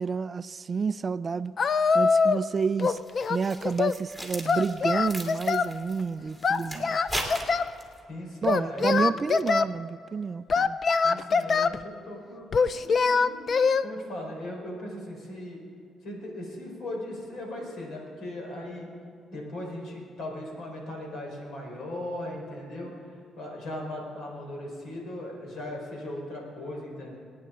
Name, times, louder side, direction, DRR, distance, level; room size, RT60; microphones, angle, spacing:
voice 1, 0.0-1.5 1.9-3.0 3.3-7.0 8.4-10.8, right 5 dB, 35° right, 0.3 m, -29 dB
Singing, 1.6-2.5 2.8-4.0 4.5-5.7 6.4-7.7 8.4-9.7 10.5-11.8 12.5-13.8, left 5 dB, 50° left, 0.4 m, -24 dB
sound 1, 2.9-8.0, equal, 15° left, 2.6 m, -38 dB
voice 2, 8.1-9.2 11.0-13.5 13.8-15.6 16.0-18.9 19.3-27.2, left 1 dB, 75° left, 4.3 m, -38 dB
26.0 x 9.4 x 3.8 m
cardioid pair, 90°, 0 cm